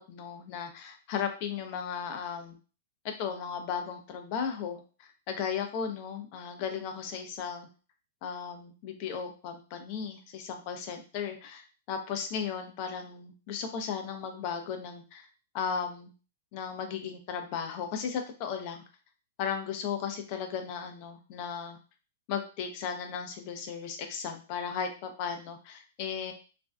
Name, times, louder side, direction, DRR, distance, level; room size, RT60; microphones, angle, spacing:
voice 1, 0.1-2.6 3.0-7.7 8.2-15.3 15.5-16.1 16.5-18.8 19.4-21.8 22.3-26.3, left 7 dB, 45° left, 6 dB, 0.5 m, -36 dB
2.4 x 2.2 x 2.3 m, 0.36 s
hypercardioid pair, 135°, 0 cm